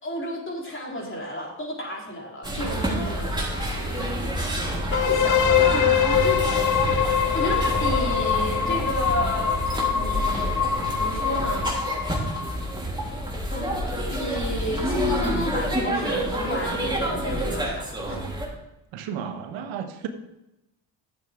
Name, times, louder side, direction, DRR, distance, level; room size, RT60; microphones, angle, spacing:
voice 1, 0.0-4.1 4.9-6.4 6.9-10.6 11.0-11.6 13.5-13.7 14.1-18.3, left 1 dB, 25° left, -2 dB, 3.7 m, -32 dB
sound 1, 2.4-18.5, right 1 dB, 10° right, 3.5 m, -28 dB
sound 2, 4.9-12.7, left 8 dB, 40° left, 0.9 m, -24 dB
voice 2, 18.9-20.1, right 8 dB, 85° right, 7 dB, 1.1 m, -33 dB
11.5 x 8.0 x 3.6 m, 0.91 s
supercardioid pair, 70°, 45 cm